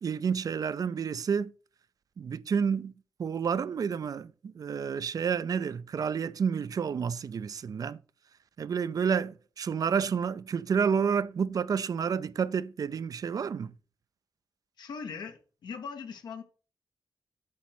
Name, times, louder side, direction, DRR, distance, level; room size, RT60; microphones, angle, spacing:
voice 1, 0.0-1.5 2.2-2.9 3.2-8.0 8.6-13.7, right 6 dB, 60° right, 0.4 m, -30 dB
voice 2, 14.8-16.4, left 6 dB, 85° left, 1.0 m, -40 dB
8.4 x 3.0 x 6.0 m
cardioid pair, 65°, 7 cm